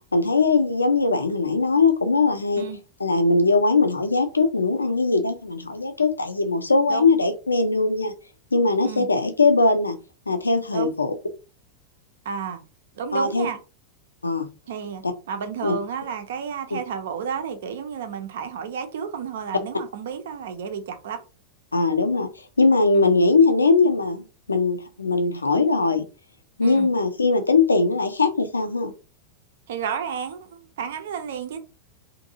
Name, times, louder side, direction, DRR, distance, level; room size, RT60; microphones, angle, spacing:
voice 1, 0.1-2.7 3.0-8.1 8.5-10.0 10.3-11.1 13.1-13.5 14.2-14.5 15.0-15.1 15.6-15.8 16.7-16.8 21.7-22.3 22.6-26.0 26.6-28.9, left 3 dB, 80° left, 0.5 m, -20 dB
voice 2, 12.2-12.6 13.0-13.6 14.7-21.2 22.9-23.1 26.6-26.9 29.7-31.6, right 7 dB, 60° right, 0.5 m, -32 dB
2.6 x 2.6 x 2.7 m
figure-of-eight pair, 90°, 0 cm